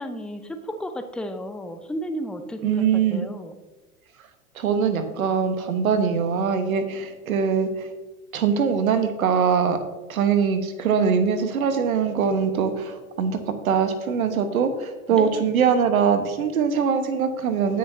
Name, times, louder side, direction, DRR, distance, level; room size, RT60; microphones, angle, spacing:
voice 1, 0.0-3.6 15.1-15.5, equal, ahead, 7 dB, 0.5 m, -33 dB
voice 2, 2.6-3.3 4.6-7.9 8.3-9.8 10.1-17.8, right 6 dB, 70° right, 9 dB, 1.4 m, -22 dB
16.5 x 6.5 x 2.8 m, 1.1 s
figure-of-eight pair, 95°, 44 cm